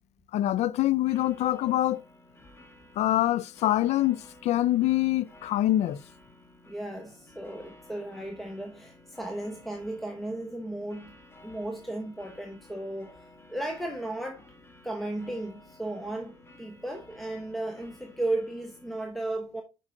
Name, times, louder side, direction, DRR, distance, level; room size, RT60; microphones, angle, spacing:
voice 1, 0.3-2.0 3.0-4.2 4.4-6.0, left 14 dB, 60° left, 0.5 m, -25 dB
sound 1, 1.0-19.0, left 1 dB, 20° left, 1.4 m, -54 dB
voice 2, 6.7-14.5 14.8-19.6, right 1 dB, ahead, 1.1 m, -35 dB
6.1 x 5.5 x 3.7 m
cardioid pair, 100°, 13 cm